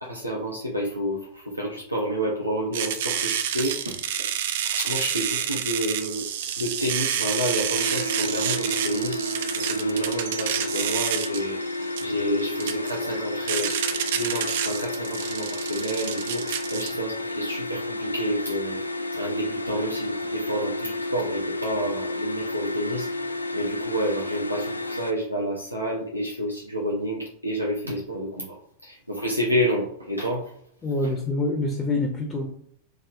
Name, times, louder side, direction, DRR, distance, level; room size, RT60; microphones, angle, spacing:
voice 1, 0.0-4.0 4.6-6.3 6.6-9.2 9.5-11.6 12.0-18.8 19.1-23.1 23.5-28.6 28.8-30.5, equal, 90° right, -4 dB, 0.8 m, -29 dB
sound 1, 2.7-16.9, right 9 dB, 55° right, 0.4 m, -29 dB
sound 2, 7.7-25.1, left 1 dB, 85° left, 0.4 m, -31 dB
voice 2, 30.8-32.5, left 2 dB, 15° left, 1 dB, 0.7 m, -26 dB
3.7 x 2.6 x 3.3 m, 0.66 s
figure-of-eight pair, 90°, 0 cm